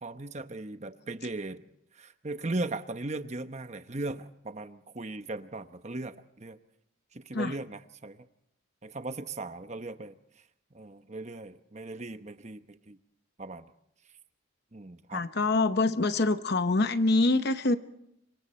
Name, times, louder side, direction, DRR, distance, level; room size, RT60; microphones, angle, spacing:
voice 1, 0.0-1.6 2.0-6.6 7.1-8.3 8.8-10.2 10.7-13.0 13.4-13.7 14.7-15.2, right 2 dB, 35° right, 9 dB, 1.0 m, -38 dB
voice 2, 15.1-17.8, left 2 dB, 50° left, 10 dB, 0.9 m, -25 dB
26.5 x 23.5 x 4.3 m, 0.77 s
head